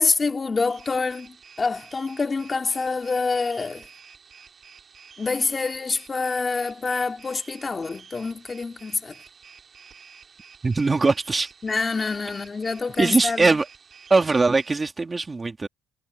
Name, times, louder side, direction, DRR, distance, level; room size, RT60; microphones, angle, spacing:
voice 1, 0.0-3.8 5.2-9.1 11.6-13.5, left 4 dB, 25° left, 2.9 m, -26 dB
sound 1, 0.7-14.7, right 6 dB, 40° right, 6.3 m, -50 dB
voice 2, 10.6-11.5 13.0-13.7 14.1-15.7, right 3 dB, 20° right, 2.9 m, -21 dB
cardioid pair, 115°, 0 cm